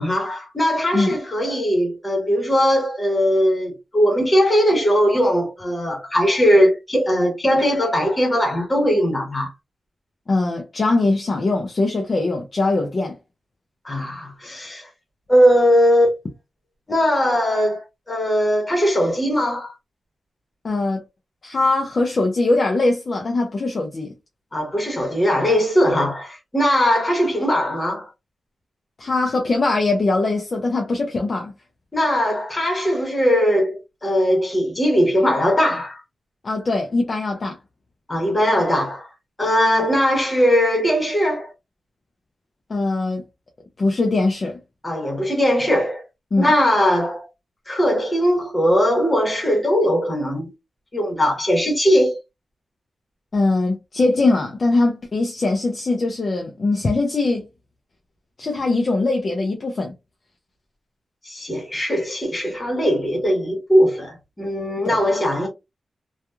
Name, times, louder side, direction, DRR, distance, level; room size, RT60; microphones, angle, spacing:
voice 1, 0.0-9.5 13.8-14.9 15.3-16.1 16.9-17.8 18.1-19.7 24.5-28.1 31.9-36.0 38.1-39.1 39.4-41.5 44.8-46.0 46.4-47.3 47.7-50.5 50.9-52.2 61.2-65.5, equal, 20° left, 1.1 m, -19 dB
voice 2, 10.3-13.2 20.6-21.0 21.4-24.1 29.0-31.5 36.4-37.6 42.7-43.2 43.8-44.6 46.3-46.5 53.3-57.4 58.4-59.9 64.8-65.0, left 2 dB, 40° left, 0.5 m, -21 dB
2.9 x 2.3 x 2.2 m
wide cardioid pair, 145°, 0 cm